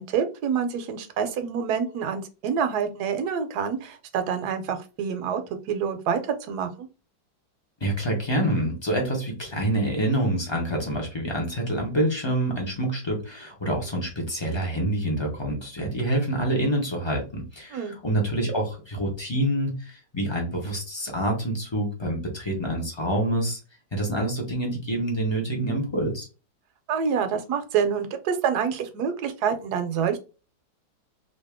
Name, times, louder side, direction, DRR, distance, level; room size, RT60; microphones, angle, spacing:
voice 1, 0.0-5.4 5.7-6.9 17.7-17.9 26.9-30.2, right 7 dB, 70° right, 8 dB, 1.1 m, -27 dB
voice 2, 7.8-23.6 23.9-26.3, right 1 dB, 25° left, 0 dB, 0.5 m, -27 dB
2.8 x 2.8 x 3.4 m, 0.33 s
omnidirectional pair, 1.9 m